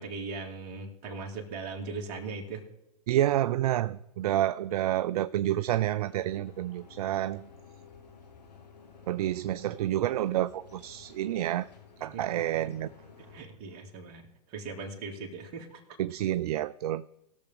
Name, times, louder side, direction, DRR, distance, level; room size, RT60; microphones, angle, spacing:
voice 1, 0.0-2.6 12.1-12.7 13.3-14.2 14.5-15.8, right 4 dB, 45° right, 2.5 m, -39 dB
voice 2, 3.1-7.5 9.1-11.7 12.0-12.9 16.0-17.1, right 13 dB, 65° right, 0.4 m, -29 dB
sound 1, 6.0-13.4, left 5 dB, 85° left, 2.1 m, -53 dB
20.0 x 6.9 x 3.7 m
hypercardioid pair, 120°, 21 cm